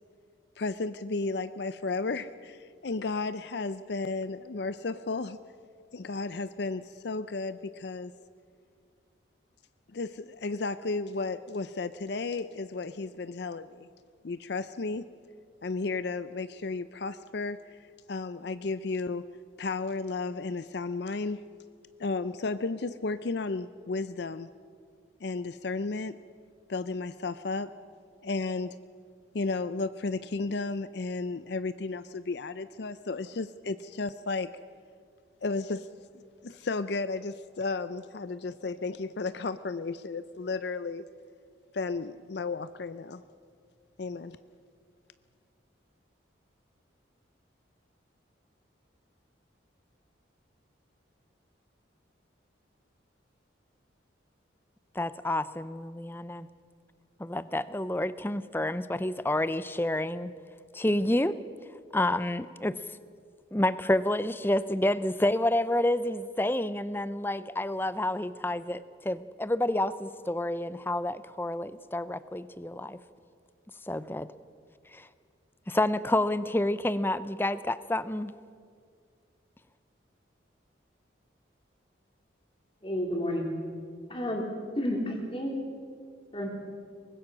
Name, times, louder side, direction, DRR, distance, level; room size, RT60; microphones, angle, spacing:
voice 1, 0.6-5.4 5.9-8.1 9.9-13.9 14.2-15.1 15.6-17.8 18.1-19.3 19.6-21.4 22.0-24.5 25.2-26.2 26.7-27.7 28.2-28.8 29.3-34.5 35.4-35.9 36.4-41.0 41.7-43.2 44.0-44.4, left 3 dB, 60° left, 13 dB, 0.5 m, -33 dB
voice 2, 55.0-56.5 57.2-60.3 60.7-61.4 61.9-62.8 63.5-73.0 73.9-74.3 74.9-75.1 75.7-78.3, left 1 dB, 10° left, 15 dB, 0.5 m, -29 dB
voice 3, 82.8-83.5 84.1-84.5 84.8-85.5 86.3-86.5, equal, 25° left, 1 dB, 3.4 m, -30 dB
23.5 x 20.5 x 6.3 m, 2.1 s
head